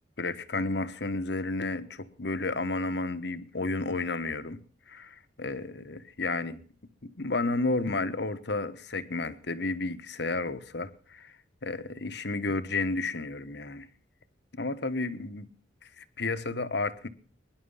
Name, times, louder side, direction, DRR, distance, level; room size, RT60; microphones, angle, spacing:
voice 1, 0.2-4.6 4.9-6.6 7.0-11.3 11.6-13.9 14.5-15.5 15.8-17.1, left 3 dB, 60° left, 1.2 m, -32 dB
22.0 x 11.0 x 5.7 m
head